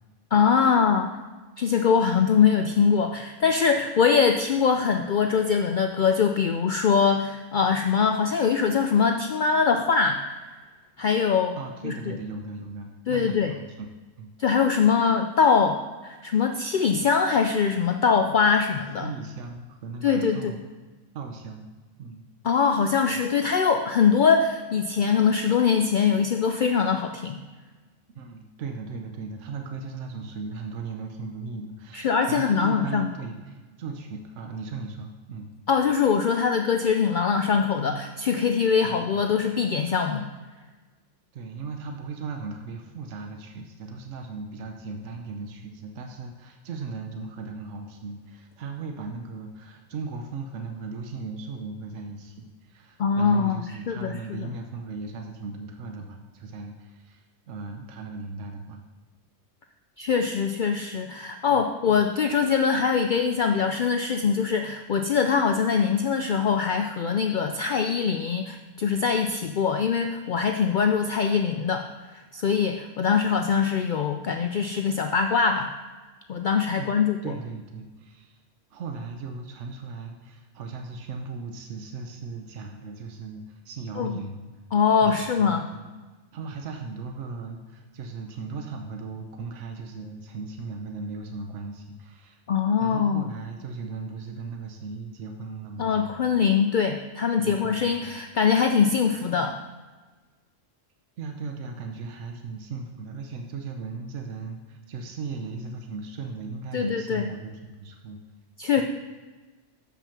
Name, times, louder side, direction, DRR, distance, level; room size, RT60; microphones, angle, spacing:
voice 1, 0.3-1.1 1.6-10.3 11.0-11.6 11.8-12.2 13.1-13.5 14.4-19.1 20.0-20.6 22.4-27.4 31.9-33.1 35.7-40.3 53.0-54.2 60.0-71.8 72.3-75.7 76.3-77.2 84.0-84.2 84.7-85.7 92.5-93.3 95.8-99.6 106.7-107.3 108.6-108.8, left 6 dB, 65° left, 5 dB, 0.5 m, -23 dB
voice 2, 11.6-13.7 14.2-14.3 19.0-20.6 21.1-21.7 22.0-22.3 23.1-23.2 28.1-35.5 38.8-39.3 41.3-58.8 61.5-62.0 76.7-78.4 78.7-84.4 85.0-85.9 86.3-92.4 92.8-96.1 97.4-98.2 101.2-108.2 108.7-108.8, right 4 dB, 70° right, 3 dB, 1.1 m, -37 dB
7.1 x 5.7 x 5.8 m, 1.3 s
omnidirectional pair, 1.3 m